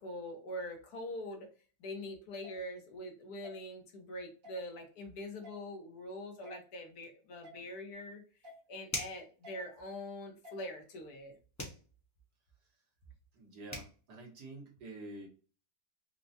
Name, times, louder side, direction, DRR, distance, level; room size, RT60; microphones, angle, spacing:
voice 1, 0.0-1.5 1.8-8.2 8.7-11.3, left 1 dB, 70° left, 3 dB, 1.3 m, -43 dB
sound 1, 2.4-2.6 3.4-3.6 4.4-4.6 5.4-5.6 6.4-6.6 7.4-7.6 8.4-8.6 9.4-9.6 10.4-10.6, left 2 dB, 55° right, 1.6 m, -51 dB
sound 2, 8.9-9.3 11.6-11.8 13.4-13.5 13.7-13.9, left 1 dB, 15° left, 0.6 m, -39 dB
voice 2, 13.3-15.3, right 2 dB, 80° right, -1 dB, 1.7 m, -48 dB
4.4 x 2.1 x 2.6 m, 0.40 s
omnidirectional pair, 1.7 m